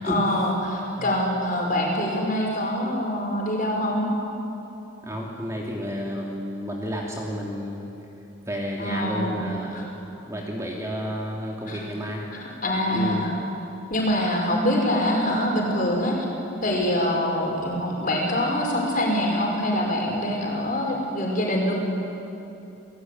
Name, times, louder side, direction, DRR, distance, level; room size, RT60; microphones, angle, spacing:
voice 1, 0.0-4.1 8.8-9.4 9.7-9.8 11.6-11.8 12.3-13.3 13.9-16.2 16.6-21.7, left 1 dB, 40° left, -1 dB, 5.9 m, -24 dB
voice 2, 5.0-7.9 8.5-12.2 12.9-13.2, equal, 15° right, -2 dB, 2.9 m, -31 dB
30.0 x 19.5 x 9.6 m, 2.9 s
head